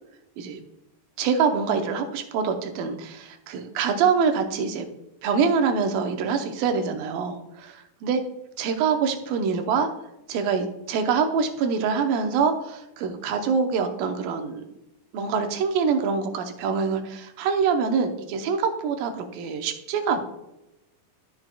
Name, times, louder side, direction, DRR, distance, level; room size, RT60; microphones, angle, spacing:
voice 1, 1.2-4.9 5.2-8.2 8.6-9.9 10.3-14.6 15.1-20.2, right 5 dB, 80° right, 5 dB, 2.5 m, -25 dB
13.5 x 5.8 x 2.2 m, 0.88 s
omnidirectional pair, 4.1 m